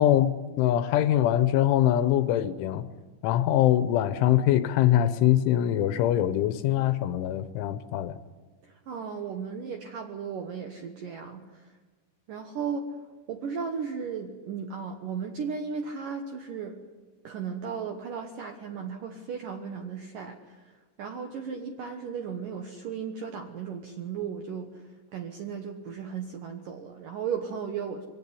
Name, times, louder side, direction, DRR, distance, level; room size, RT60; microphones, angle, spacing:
voice 1, 0.0-2.9 3.2-8.1, left 12 dB, 80° left, 3.1 m, -23 dB
voice 2, 8.6-11.7 12.3-12.9 13.3-16.8 17.2-20.7 21.0-24.8 25.1-28.0, right 6 dB, 90° right, 1.9 m, -35 dB
23.0 x 18.0 x 9.8 m
omnidirectional pair, 5.9 m